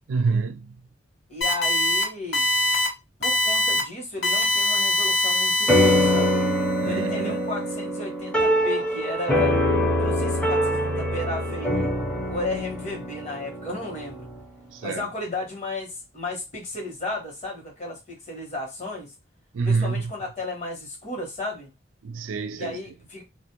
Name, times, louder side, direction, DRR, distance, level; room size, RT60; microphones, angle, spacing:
voice 1, 0.1-0.8 6.8-7.4 14.7-15.1 19.5-20.1 22.0-22.8, right 4 dB, 85° right, 0.4 m, -27 dB
voice 2, 1.3-2.5 3.2-6.4 6.8-9.5 10.0-11.9 12.3-14.3 14.8-19.1 19.6-21.7 22.5-23.2, left 2 dB, 40° left, 1.1 m, -34 dB
sound 1, 1.4-2.0 2.3-2.9 3.2-3.8 4.2-6.5, left 1 dB, 65° left, 1.1 m, -23 dB
sound 2, 5.7-14.4, equal, 5° left, 0.6 m, -24 dB
2.4 x 2.1 x 2.9 m
head